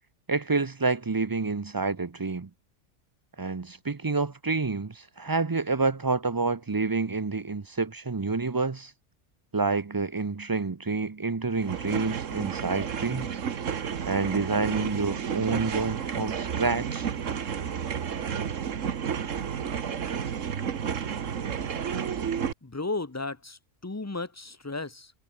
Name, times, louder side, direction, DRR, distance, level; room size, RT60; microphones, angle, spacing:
voice 1, 0.3-2.5 3.4-8.9 9.5-13.4 14.0-17.1, right 3 dB, 30° right, 0.4 m, -28 dB
sound 1, 11.5-22.5, right 7 dB, 80° right, 1.6 m, -31 dB
voice 2, 22.6-25.1, left 3 dB, 15° left, 0.9 m, -34 dB
omnidirectional pair, 1.3 m